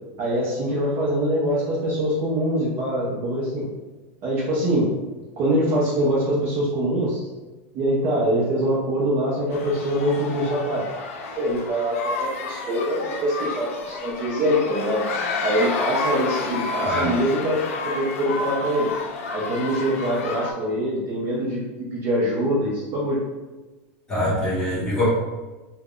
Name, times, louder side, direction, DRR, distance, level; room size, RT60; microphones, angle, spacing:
voice 1, 0.2-3.6 4.2-4.9 5.4-7.2 7.7-10.8 11.4-15.0 15.4-18.9 19.3-23.2, equal, 30° right, -5 dB, 0.5 m, -24 dB
sound 1, 9.5-20.5, left 3 dB, 90° left, 0.4 m, -30 dB
voice 2, 24.1-25.1, left 1 dB, 10° left, -10 dB, 1.1 m, -23 dB
2.4 x 2.1 x 3.6 m, 1.2 s
supercardioid pair, 165°, 7 cm